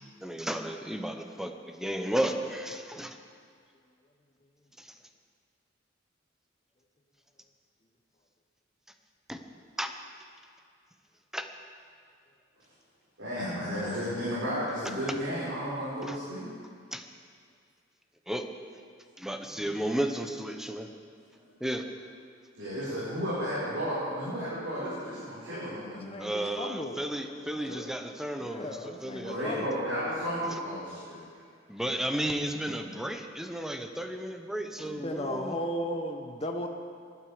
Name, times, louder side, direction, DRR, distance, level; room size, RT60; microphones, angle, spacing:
voice 1, 0.2-3.2 4.8-4.9 9.3-9.4 9.8-9.9 11.3-11.5 16.0-16.2 16.9-17.0 18.3-18.4 19.2-20.9 21.6-21.8 26.2-29.7 31.7-35.6, right 1 dB, ahead, 5 dB, 0.9 m, -33 dB
voice 2, 13.2-16.4 22.5-26.1 27.4-27.7 28.8-28.9 29.2-31.4, equal, 75° right, -10 dB, 5.3 m, -33 dB
voice 3, 25.9-27.0 27.3-27.4 27.7-29.9 34.8-36.7, left 1 dB, 30° left, 3 dB, 1.0 m, -36 dB
19.0 x 12.5 x 5.1 m, 2.2 s
head